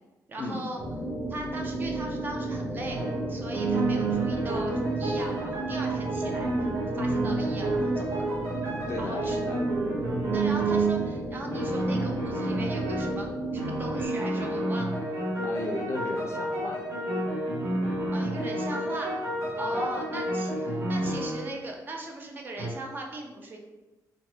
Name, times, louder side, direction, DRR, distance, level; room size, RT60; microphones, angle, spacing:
voice 1, 0.3-0.8 1.3-3.0 3.3-6.7 6.9-8.3 9.0-9.4 10.3-15.0 18.1-19.2 19.6-23.6, right 2 dB, 30° right, 1 dB, 0.4 m, -38 dB
sound 1, 0.8-14.1, right 2 dB, 5° left, 0.7 m, -33 dB
sound 2, 2.9-3.2 3.5-11.1 11.5-13.2 13.6-21.5 22.6-22.7, right 2 dB, 50° right, 1.0 m, -30 dB
voice 2, 8.9-9.7 15.4-16.8 19.7-20.0, left 2 dB, 40° left, 2 dB, 0.4 m, -35 dB
2.7 x 2.1 x 3.1 m, 1.1 s
cardioid pair, 170°, 7 cm